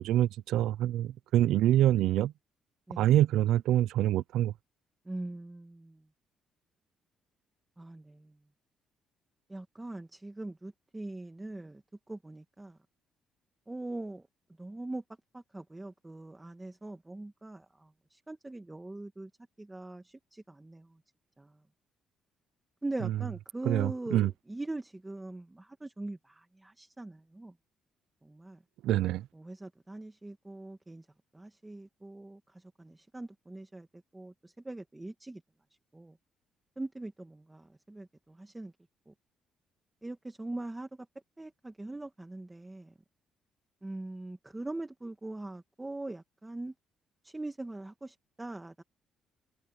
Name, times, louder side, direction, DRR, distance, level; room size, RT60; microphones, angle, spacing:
voice 1, 0.0-2.3 3.0-4.5 23.7-24.3 28.8-29.3, right 13 dB, 85° right, 0.6 m, -26 dB
voice 2, 5.0-6.0 7.8-8.4 9.5-11.8 12.1-12.8 13.7-14.3 14.6-15.0 15.3-19.3 19.6-21.0 21.4-21.6 22.8-27.5 28.2-28.6 29.3-31.1 31.3-33.9 34.1-35.4 35.9-36.2 36.8-38.7 39.1-39.2 40.0-40.9 41.4-42.9 43.8-46.7 47.2-48.8, right 2 dB, 10° right, 1.6 m, -42 dB
cardioid pair, 140°, 0 cm